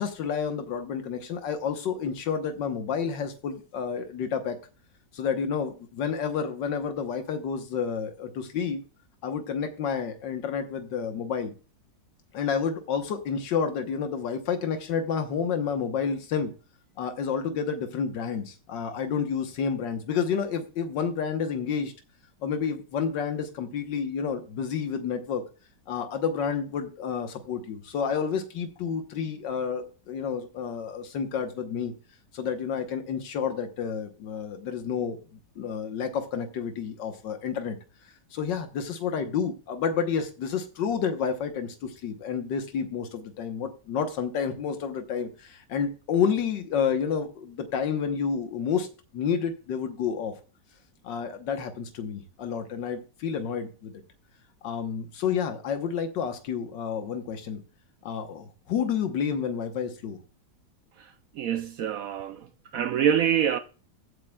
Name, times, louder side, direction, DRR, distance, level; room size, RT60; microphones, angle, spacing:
voice 1, 0.0-4.6 5.1-8.8 9.2-11.5 12.3-16.5 17.0-21.9 22.4-25.4 25.9-31.9 32.3-35.2 35.6-37.8 38.3-48.9 49.1-50.3 51.0-54.0 54.6-57.6 58.0-60.2, left 6 dB, 90° left, 1.7 m, -30 dB
voice 2, 61.0-62.5 62.7-63.6, right 9 dB, 70° right, 0.8 m, -26 dB
15.0 x 8.6 x 2.3 m
omnidirectional pair, 1.9 m